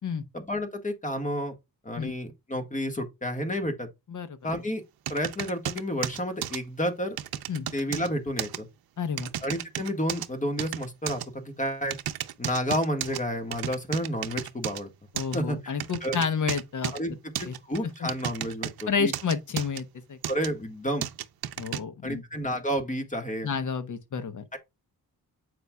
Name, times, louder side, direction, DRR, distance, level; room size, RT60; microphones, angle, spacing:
voice 1, 0.3-1.5 1.8-3.9 4.4-4.8 5.1-7.2 7.7-8.7 9.4-12.0 12.4-14.9 15.3-16.2 16.9-19.1 20.3-21.1 22.0-23.5 24.5-24.6, equal, 20° left, 1.6 m, -31 dB
sound 1, 5.1-6.6 7.2-8.1 8.4-8.6 9.2-10.3 10.6-11.3 11.9-13.2 13.5-14.8 15.2-15.4 15.8-17.0 17.4-18.8 19.1-19.8 20.2-20.5 21.0-21.8, right 11 dB, 70° right, 0.6 m, -33 dB
voice 2, 9.0-9.3 15.1-16.9 17.4-17.5 17.8-18.1 18.9-20.2 21.6-22.2 23.4-24.4, left 6 dB, 50° left, 1.0 m, -30 dB
7.9 x 5.4 x 2.3 m
wide cardioid pair, 110°, 38 cm